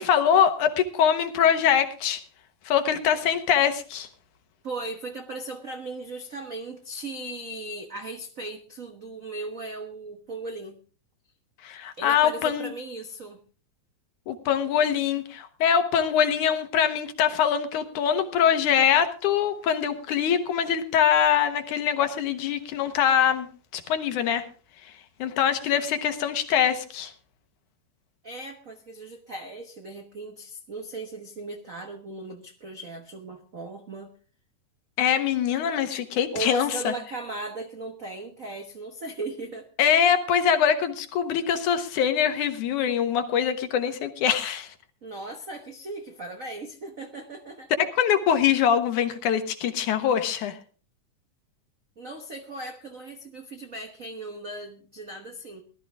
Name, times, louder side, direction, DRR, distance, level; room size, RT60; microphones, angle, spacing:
voice 1, 0.0-2.2 2.7-4.1 11.6-12.7 14.3-23.5 23.7-24.4 25.2-27.1 35.0-36.9 39.8-44.7 47.8-50.6, left 8 dB, 75° left, 8 dB, 2.7 m, -23 dB
voice 2, 4.6-10.8 12.0-13.4 28.2-34.1 36.3-39.7 45.0-47.7 52.0-55.6, right 2 dB, 80° right, 5 dB, 0.7 m, -37 dB
18.0 x 12.5 x 3.6 m, 0.36 s
omnidirectional pair, 3.5 m